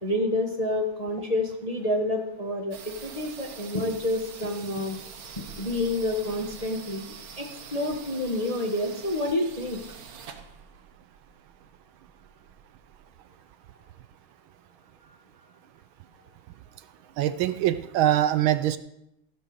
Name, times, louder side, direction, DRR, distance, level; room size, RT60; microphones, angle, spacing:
voice 1, 0.0-5.0 5.6-9.8, left 1 dB, 25° left, 1 dB, 1.0 m, -28 dB
sound 1, 2.7-13.1, right 7 dB, 55° right, 1.2 m, -45 dB
voice 2, 17.2-18.8, right 12 dB, 75° right, 12 dB, 1.3 m, -23 dB
15.5 x 6.5 x 6.4 m, 0.83 s
omnidirectional pair, 2.4 m